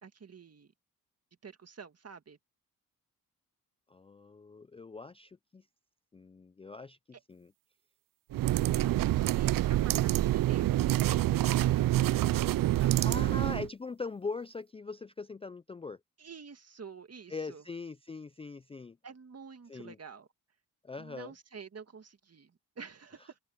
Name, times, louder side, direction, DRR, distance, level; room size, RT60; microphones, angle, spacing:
voice 1, 0.0-0.7 1.4-2.4 8.7-12.5 12.8-12.9 13.2-13.4 16.2-17.6 19.0-20.3 21.0-23.4, right 5 dB, 40° right, 1.9 m, -49 dB
voice 2, 3.9-5.7 6.1-7.0 7.3-7.5 9.8-10.0 12.8-16.0 17.3-19.0 19.7-20.0 20.8-21.3, left 4 dB, 15° left, 0.4 m, -41 dB
sound 1, 8.3-13.7, right 14 dB, 65° right, 0.5 m, -27 dB
open air
cardioid pair, 75°, 36 cm